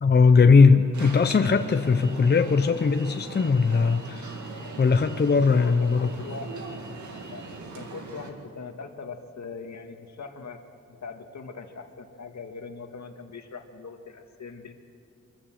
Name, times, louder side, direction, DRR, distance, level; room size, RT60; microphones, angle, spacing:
voice 1, 0.0-4.3 4.8-6.1, left 4 dB, 35° left, 8 dB, 0.6 m, -19 dB
Alarm, 0.9-8.3, right 3 dB, 75° right, 2.2 m, -40 dB
voice 2, 5.5-6.6 7.3-7.4 7.7-10.6 10.9-14.7, left 4 dB, 70° left, 5 dB, 1.7 m, -41 dB
24.0 x 15.0 x 7.7 m, 2.5 s
wide cardioid pair, 130°, 30 cm